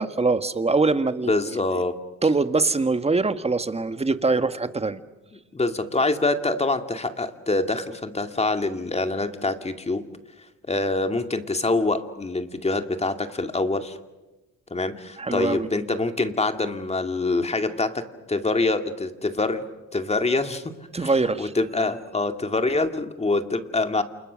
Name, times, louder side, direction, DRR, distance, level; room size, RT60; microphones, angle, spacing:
voice 1, 0.0-1.3 2.2-5.0 15.2-15.7 20.9-21.5, right 3 dB, 20° right, 11 dB, 1.5 m, -23 dB
voice 2, 1.3-2.0 5.3-10.1 10.6-14.0 14.7-19.6 19.9-24.0, left 2 dB, 20° left, 7 dB, 2.3 m, -25 dB
29.5 x 28.0 x 6.4 m, 1.1 s
cardioid pair, 90°, 30 cm